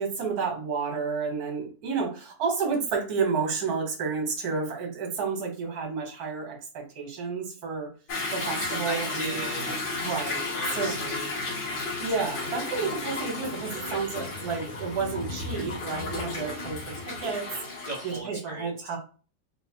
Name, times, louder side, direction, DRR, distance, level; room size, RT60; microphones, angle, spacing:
voice 1, 0.0-7.9 8.3-9.4 10.0-10.9 12.0-17.5 18.0-19.0, right 5 dB, 55° right, 1 dB, 1.6 m, -31 dB
Toilet flush / Drip / Trickle dribble, 8.1-18.2, left 3 dB, 60° left, 1.6 m, -33 dB
voice 2, 8.8-9.9 10.5-11.3 12.3-12.4 17.8-18.7, right 1 dB, 35° right, -3 dB, 0.7 m, -37 dB
3.9 x 2.6 x 2.8 m, 0.36 s
omnidirectional pair, 2.0 m